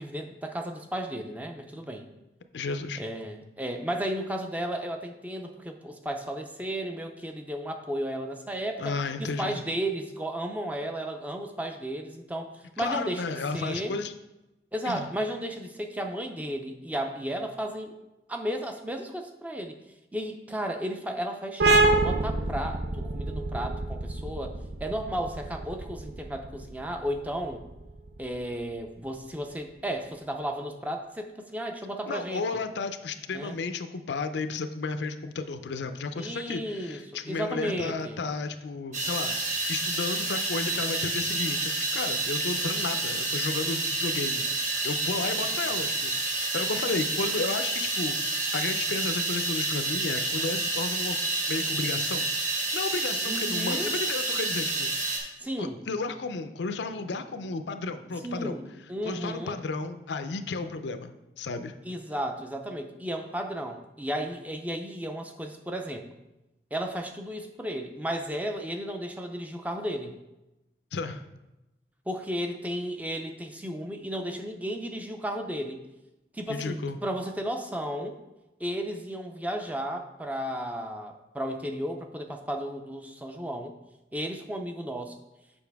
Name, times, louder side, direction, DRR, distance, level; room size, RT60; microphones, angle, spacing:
voice 1, 0.0-2.1 3.0-8.9 9.2-14.0 14.7-17.9 18.3-19.8 20.1-27.7 28.2-32.4 33.3-33.5 36.2-38.2 45.5-45.8 53.3-53.9 55.4-55.8 58.2-58.6 58.9-59.6 61.8-66.1 66.7-70.2 72.1-75.8 76.3-78.2 78.6-83.7 84.1-85.1, equal, 10° right, 4 dB, 0.4 m, -34 dB
voice 2, 2.5-3.0 8.8-9.6 12.8-14.1 14.9-15.1 32.1-51.2 51.5-58.6 59.0-61.7 70.9-71.2 76.5-77.0, left 3 dB, 85° left, 9 dB, 0.5 m, -33 dB
sound 1, 21.6-28.9, right 2 dB, 75° right, 0.7 m, -27 dB
sound 2, 38.9-55.2, right 2 dB, 45° right, 1.2 m, -29 dB
sound 3, 55.4-61.1, equal, 30° right, 1.4 m, -57 dB
7.0 x 5.2 x 3.4 m, 0.99 s
head